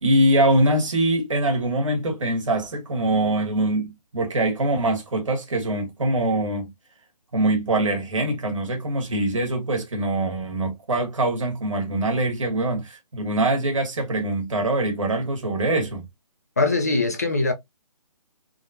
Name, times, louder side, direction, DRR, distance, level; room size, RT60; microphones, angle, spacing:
voice 1, 0.0-6.7 7.3-16.0, right 1 dB, 50° right, 1.6 m, -23 dB
voice 2, 16.6-17.5, left 3 dB, 25° left, 0.5 m, -21 dB
3.5 x 2.4 x 2.6 m
hypercardioid pair, 170°, 20 cm